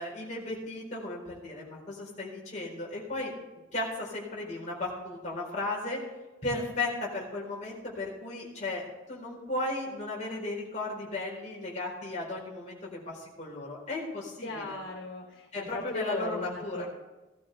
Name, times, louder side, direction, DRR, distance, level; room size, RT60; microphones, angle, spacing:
voice 1, 0.0-3.3 3.7-6.1 6.4-8.8 9.1-14.8 15.5-16.9, left 2 dB, 35° left, -4 dB, 4.1 m, -35 dB
voice 2, 14.4-16.9, left 2 dB, 85° left, -1 dB, 2.7 m, -37 dB
17.0 x 12.5 x 3.4 m, 1.1 s
head